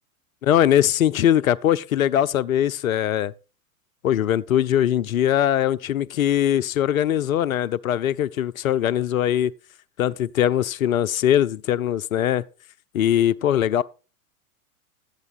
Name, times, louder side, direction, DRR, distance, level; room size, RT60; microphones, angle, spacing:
voice 1, 0.4-3.3 4.0-9.5 10.0-12.4 12.9-13.8, left 11 dB, 70° left, 0.6 m, -21 dB
12.0 x 8.3 x 4.1 m
figure-of-eight pair, 105°, 43 cm